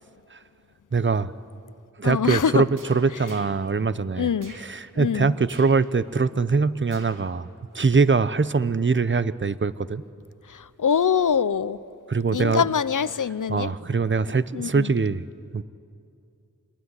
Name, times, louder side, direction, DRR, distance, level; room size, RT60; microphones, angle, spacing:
voice 1, 0.9-1.3 2.0-4.3 4.6-7.5 7.7-10.0 12.1-12.6 13.5-15.3 15.5-15.6, right 4 dB, 35° right, 16 dB, 0.8 m, -23 dB
voice 2, 2.0-2.6 4.2-4.5 5.0-5.3 10.5-11.8 12.3-13.7 14.5-14.9, left 7 dB, 70° left, 17 dB, 0.7 m, -24 dB
sound 1, 2.3-2.5 2.7-3.6 4.4-4.7 5.5-5.8 6.9-7.3 7.7-7.8, right 3 dB, 75° right, 2.5 m, -46 dB
26.0 x 21.0 x 9.7 m, 2.6 s
cardioid pair, 40°, 32 cm